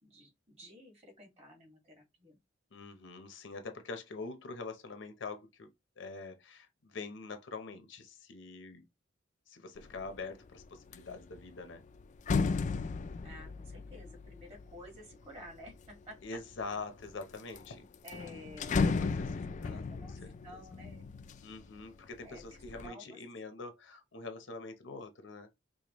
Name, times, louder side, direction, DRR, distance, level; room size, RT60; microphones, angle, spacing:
voice 1, 0.0-2.4 13.2-16.2 18.0-19.4 19.6-21.1 22.2-23.2, left 1 dB, 35° right, 1.7 m, -52 dB
voice 2, 2.7-5.7 6.0-8.8 9.5-11.8 16.2-17.9 18.6-19.2 19.6-20.6 21.4-25.5, left 3 dB, 75° left, 0.7 m, -44 dB
sound 1, 9.8-10.2 10.6-15.9 16.5-17.2 17.6-17.7 17.9-21.9 22.2-22.9, left 4 dB, 40° left, 0.3 m, -35 dB
5.0 x 2.2 x 3.0 m
head